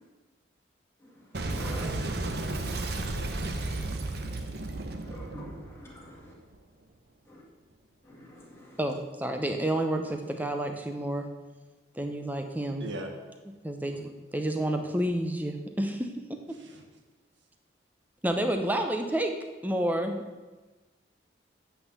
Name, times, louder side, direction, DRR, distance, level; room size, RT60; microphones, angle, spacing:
Boom, 1.3-6.6, right 2 dB, 55° right, 0.9 m, -33 dB
voice 1, 1.4-2.1 5.0-6.3 7.3-7.4 8.1-8.8, equal, 15° left, -4 dB, 2.2 m, -45 dB
voice 2, 8.8-11.3 12.0-12.9 13.6-16.4 18.2-19.3 19.6-20.2, right 1 dB, 10° right, 5 dB, 0.8 m, -30 dB
voice 3, 16.5-16.8, right 1 dB, 75° right, 2 dB, 1.6 m, -42 dB
8.7 x 5.7 x 8.2 m, 1.3 s
head